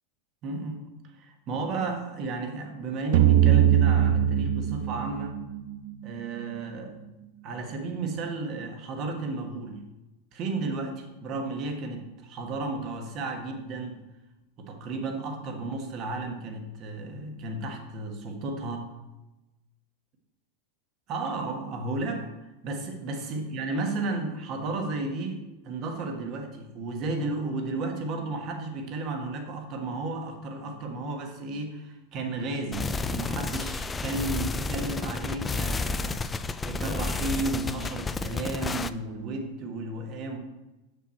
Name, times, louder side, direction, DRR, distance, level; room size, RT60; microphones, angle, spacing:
voice 1, 0.4-5.4 6.0-7.0 7.4-9.8 10.3-14.0 14.6-18.9 21.1-22.3 22.6-40.4, right 3 dB, 40° right, 4 dB, 1.4 m, -33 dB
sound 1, 3.1-6.1, right 11 dB, 70° right, 0.6 m, -21 dB
sound 2, 32.7-38.9, left 3 dB, 15° left, 0.3 m, -31 dB
6.8 x 6.2 x 4.4 m, 1.0 s
supercardioid pair, 130°, 0 cm